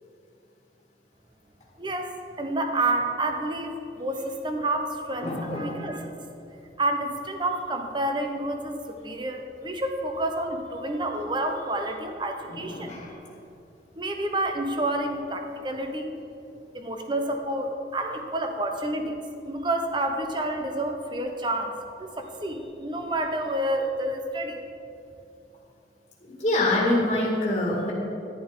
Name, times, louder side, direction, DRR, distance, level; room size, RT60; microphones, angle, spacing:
voice 1, 1.8-6.1 6.8-13.0 14.0-16.2 16.7-21.7 22.0-24.6, right 1 dB, 25° right, 4 dB, 0.8 m, -29 dB
voice 2, 5.2-5.7 11.1-11.2 12.5-13.1 26.2-27.9, left 1 dB, 30° left, -5 dB, 1.9 m, -26 dB
11.0 x 11.0 x 3.8 m, 2.7 s
head